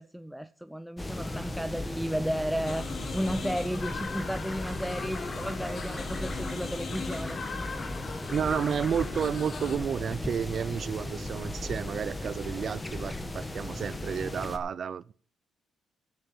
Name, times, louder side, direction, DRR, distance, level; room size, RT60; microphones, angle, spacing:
voice 1, 0.0-2.9 3.1-7.4, equal, ahead, 0.6 m, -33 dB
Jacinta Cain Atmos, 1.0-14.6, left 1 dB, 20° left, 1.9 m, -36 dB
sound 1, 2.6-9.8, left 5 dB, 50° left, 2.5 m, -40 dB
voice 2, 8.3-15.1, right 7 dB, 55° right, 0.6 m, -31 dB
11.5 x 8.1 x 7.4 m
cardioid pair, 90°, 0 cm